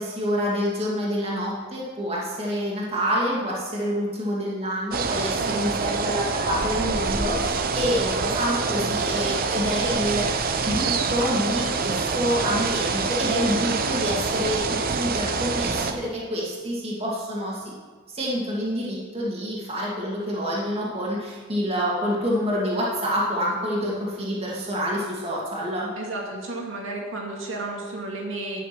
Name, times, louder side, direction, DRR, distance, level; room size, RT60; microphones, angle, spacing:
voice 1, 0.0-17.6 18.1-25.9, equal, 30° right, -5 dB, 2.4 m, -27 dB
sound 1, 4.9-15.9, right 4 dB, 45° right, 0.7 m, -26 dB
voice 2, 5.4-5.8 26.0-28.6, right 2 dB, 80° right, -1 dB, 2.4 m, -32 dB
11.0 x 6.6 x 6.1 m, 1.5 s
head